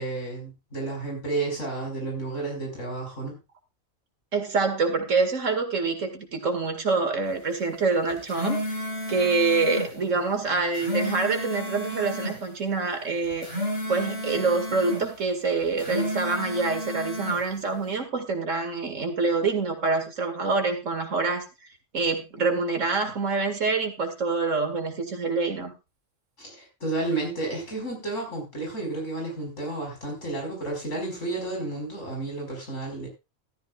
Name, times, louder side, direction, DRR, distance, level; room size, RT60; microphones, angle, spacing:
voice 1, 0.0-3.4 26.4-33.1, right 2 dB, 75° left, 0 dB, 5.5 m, -31 dB
voice 2, 4.3-8.8 9.1-13.5 13.9-21.5 21.9-25.7, right 4 dB, 80° right, 6 dB, 2.4 m, -26 dB
sound 1, 8.1-9.9 10.6-12.4 13.2-15.0 15.7-17.4, equal, 50° left, 6.8 m, -32 dB
14.5 x 13.0 x 2.4 m, 0.25 s
omnidirectional pair, 1.3 m